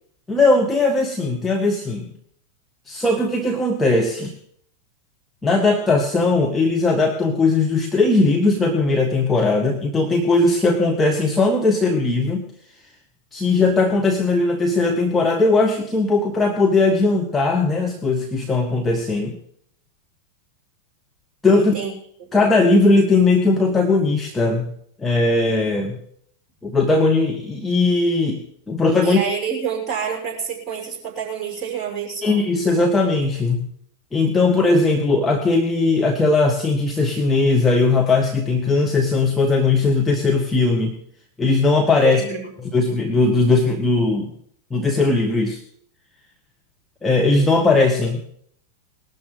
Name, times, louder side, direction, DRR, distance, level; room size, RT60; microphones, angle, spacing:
voice 1, 0.3-2.1 2.9-4.3 5.4-12.5 13.3-19.4 21.4-21.7 22.3-24.7 25.0-26.0 26.6-29.2 32.2-33.7 34.1-41.0 41.4-42.2 42.7-44.3 44.7-45.6 47.0-48.2, left 3 dB, 10° left, 2 dB, 1.6 m, -18 dB
voice 2, 21.6-21.9 29.0-32.4 42.0-42.5, right 7 dB, 25° right, -1 dB, 6.4 m, -28 dB
19.5 x 12.5 x 4.0 m, 0.67 s
figure-of-eight pair, 90°, 0 cm